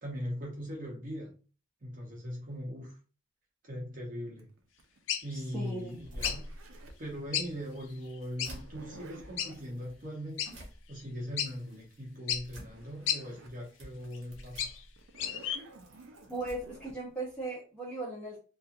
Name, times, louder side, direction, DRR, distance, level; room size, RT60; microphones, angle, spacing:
voice 1, 0.0-1.3 1.8-3.0 3.6-4.5 5.2-6.5 7.0-10.6 10.9-14.8, equal, 40° right, 0.7 m, -40 dB
Zipper (clothing), 4.4-7.1 8.4-9.7 12.3-12.4 12.6-13.6 14.1-14.2 15.0-17.0, right 3 dB, 85° right, 0.5 m, -52 dB
sound 1, 5.1-5.3 6.2-6.4 7.3-7.5 7.8-7.9 8.4-8.5 9.4-9.5 10.4-10.5 11.0-11.1 11.4-11.5 12.3-12.4 13.1-13.2 14.1-14.8 15.2-15.6, left 9 dB, 75° left, 0.4 m, -32 dB
voice 2, 5.3-6.0 16.3-18.5, right 2 dB, 5° left, 0.6 m, -38 dB
sound 2, 5.8-17.5, equal, 70° right, 0.9 m, -50 dB
2.8 x 2.3 x 2.4 m
head